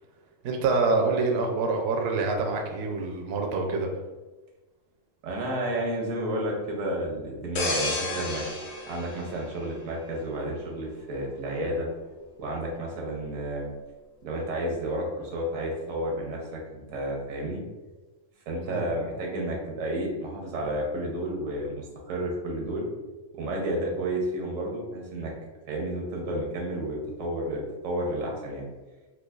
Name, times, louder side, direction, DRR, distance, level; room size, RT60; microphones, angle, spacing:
voice 1, 0.4-3.9 18.7-18.9, right 3 dB, 65° right, 2 dB, 0.7 m, -26 dB
voice 2, 5.2-8.4 8.9-11.9 12.4-13.7 14.2-17.6 18.5-22.9 23.3-25.3 25.7-28.7, right 1 dB, 85° right, -1 dB, 1.2 m, -31 dB
sound 1, 7.6-10.2 10.7-10.9, left 2 dB, 60° left, 0.8 m, -32 dB
4.5 x 2.3 x 2.3 m, 1.2 s
omnidirectional pair, 1.4 m